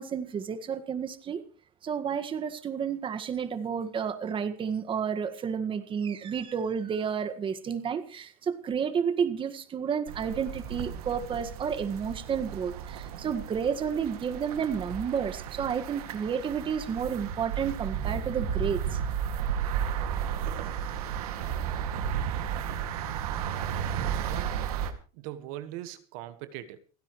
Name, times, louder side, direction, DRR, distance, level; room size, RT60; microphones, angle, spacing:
voice 1, 0.0-1.4 1.8-19.0, right 7 dB, 25° right, 1.7 m, -31 dB
sound 1, 10.1-24.9, right 8 dB, 90° right, 2.2 m, -33 dB
voice 2, 24.2-24.6 25.1-26.8, right 13 dB, 70° right, 1.6 m, -40 dB
29.5 x 9.8 x 3.1 m
supercardioid pair, 130°, 19 cm